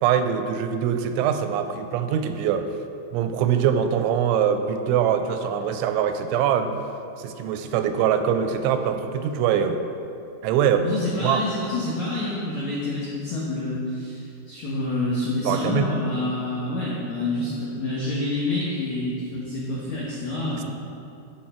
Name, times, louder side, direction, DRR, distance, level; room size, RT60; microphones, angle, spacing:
voice 1, 0.0-2.7 3.1-6.7 7.2-9.8 10.4-10.9 11.2-11.4 15.4-15.9, right 8 dB, 85° right, 8 dB, 2.9 m, -23 dB
voice 2, 10.8-20.6, left 2 dB, 90° left, -6 dB, 1.5 m, -28 dB
14.0 x 5.7 x 4.4 m, 2.8 s
omnidirectional pair, 5.4 m